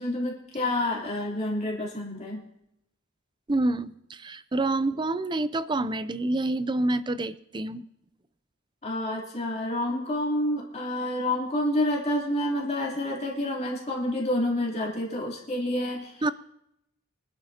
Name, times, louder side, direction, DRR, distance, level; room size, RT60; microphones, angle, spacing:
voice 1, 0.0-2.4 8.8-16.2, left 1 dB, 30° left, -4 dB, 3.2 m, -28 dB
voice 2, 3.5-7.8 16.2-16.3, right 2 dB, 20° right, 14 dB, 0.5 m, -27 dB
25.5 x 11.5 x 2.8 m, 0.80 s
head